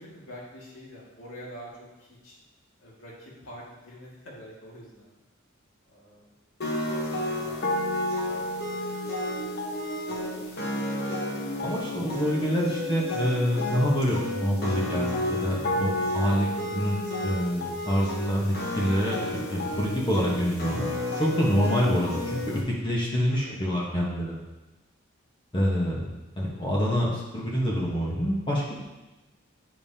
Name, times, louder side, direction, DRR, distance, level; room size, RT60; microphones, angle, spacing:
voice 1, 0.0-2.4 2.8-5.1 5.9-6.3 6.8-7.6 8.2-8.6 10.0-10.9 23.3-23.5, equal, 70° left, -6 dB, 2.0 m, -46 dB
sound 1, 6.6-22.6, left 1 dB, 50° left, 1.1 m, -31 dB
voice 2, 11.6-19.2 19.5-20.9 21.2-24.4 25.5-26.1 26.4-28.8, equal, 25° left, -4 dB, 1.1 m, -26 dB
9.1 x 5.3 x 2.8 m, 1.1 s
head